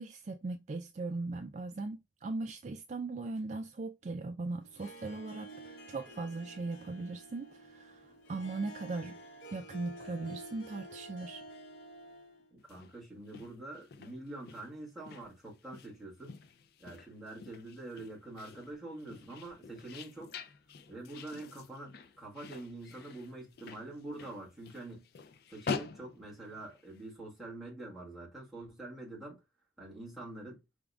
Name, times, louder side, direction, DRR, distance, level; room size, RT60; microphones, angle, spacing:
voice 1, 0.0-9.2 9.5-11.4, right 3 dB, 40° right, 0.3 m, -39 dB
Harp, 4.6-12.5, right 1 dB, 80° left, 1.0 m, -50 dB
voice 2, 12.5-16.4 16.8-20.3 20.9-25.1 25.5-29.4 29.8-30.6, right 2 dB, ahead, 2.0 m, -45 dB
sound 1, 12.6-27.1, left 5 dB, 55° left, 0.4 m, -46 dB
5.0 x 3.5 x 2.3 m
head